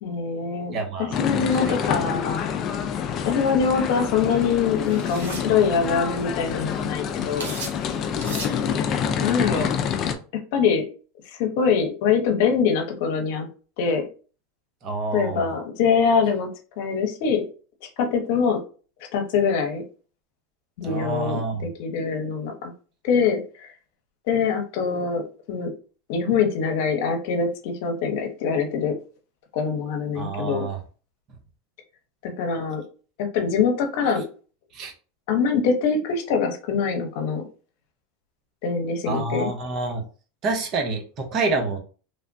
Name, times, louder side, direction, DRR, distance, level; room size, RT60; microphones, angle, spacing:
voice 1, 0.0-2.4 3.2-7.5 9.2-9.7 10.5-10.9 11.3-13.5 13.8-14.1 15.1-16.5 16.8-17.4 18.0-18.6 19.1-19.8 20.8-22.7 23.0-23.7 24.3-25.7 26.1-28.9 29.5-30.7 32.2-32.8 33.2-34.2 35.3-37.4 38.6-39.5, left 6 dB, 65° left, 4 dB, 0.8 m, -24 dB
voice 2, 0.7-1.7 8.1-8.4 14.8-15.5 20.8-21.7 30.2-30.8 34.7-34.9 39.1-40.0 40.4-41.8, right 3 dB, 45° right, 3 dB, 0.9 m, -28 dB
sound 1, 1.1-10.1, left 7 dB, 40° left, 0.4 m, -27 dB
sound 2, 3.5-3.6 4.9-5.5 6.2-6.3 6.4-6.8 7.4-7.8 8.2-8.6, right 3 dB, 85° right, 1.1 m, -35 dB
3.3 x 2.1 x 2.6 m, 0.37 s
hypercardioid pair, 105°, 0 cm